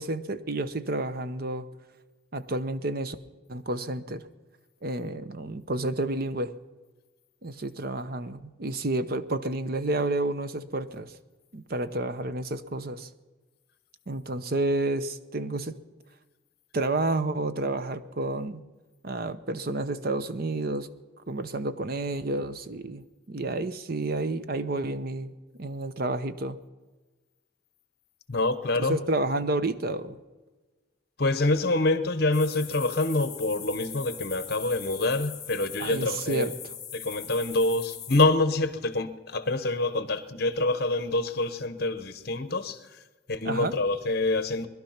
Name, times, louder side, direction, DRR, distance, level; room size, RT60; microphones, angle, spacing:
voice 1, 0.0-1.7 2.3-3.2 3.5-4.2 4.8-6.5 7.4-11.1 11.5-13.1 14.1-15.7 16.7-18.6 19.0-20.9 21.3-25.3 25.6-26.6 28.8-30.2 35.8-36.5 43.4-43.7, right 2 dB, 50° right, 12 dB, 0.7 m, -30 dB
voice 2, 28.3-29.0 31.2-36.5 36.9-42.8 43.3-44.7, left 2 dB, 50° left, 11 dB, 1.1 m, -26 dB
sound 1, 32.3-38.2, left 8 dB, 20° left, 1.6 m, -41 dB
21.0 x 12.0 x 5.8 m, 1.3 s
head